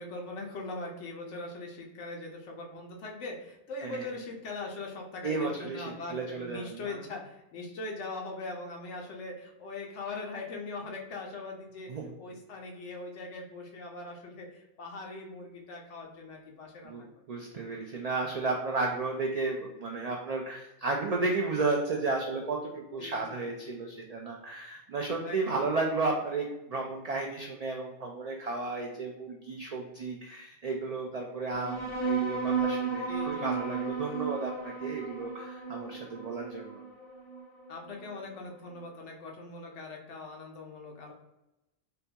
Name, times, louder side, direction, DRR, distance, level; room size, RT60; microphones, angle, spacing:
voice 1, 0.0-11.9 12.2-17.1 23.0-23.5 25.2-25.6 33.1-33.7 37.7-41.1, left 3 dB, 80° left, 1 dB, 1.0 m, -41 dB
voice 2, 5.2-7.0 11.9-12.1 16.8-36.8, right 3 dB, 80° right, 0 dB, 0.3 m, -33 dB
sound 1, 31.5-38.5, right 5 dB, 30° left, 0.6 m, -34 dB
3.8 x 2.2 x 2.8 m, 0.91 s
omnidirectional pair, 1.2 m